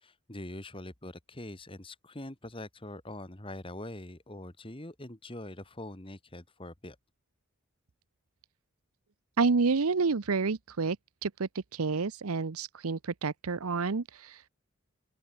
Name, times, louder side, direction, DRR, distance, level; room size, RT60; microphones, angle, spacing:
voice 1, 0.0-7.0, left 1 dB, 25° left, 2.0 m, -43 dB
voice 2, 9.4-11.0 11.2-14.5, right 4 dB, 85° right, 0.8 m, -29 dB
open air
head